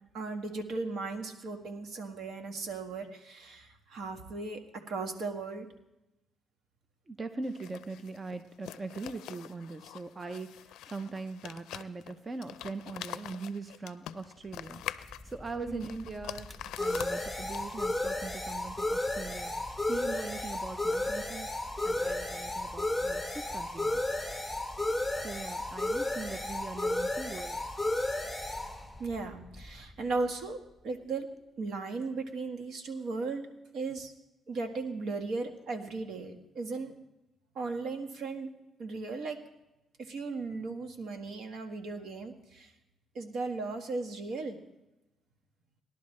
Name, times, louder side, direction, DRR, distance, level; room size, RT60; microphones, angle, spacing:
voice 1, 0.1-4.6 4.9-5.7 15.6-16.0 29.0-30.6 30.8-31.3 31.6-33.5 33.7-34.1 34.5-36.9 37.5-38.5 38.8-39.4 40.0-42.7 43.1-44.6, right 3 dB, 70° right, 5 dB, 1.6 m, -36 dB
voice 2, 7.1-16.5 16.8-21.5 21.8-24.1 25.2-27.7 36.2-36.3, right 3 dB, 30° right, 9 dB, 0.7 m, -41 dB
sound 1, 7.4-18.0, left 12 dB, 85° left, 0.4 m, -45 dB
sound 2, 14.9-30.3, left 1 dB, 5° right, 1.3 m, -34 dB
19.5 x 11.5 x 3.2 m, 0.93 s
cardioid pair, 90°, 0 cm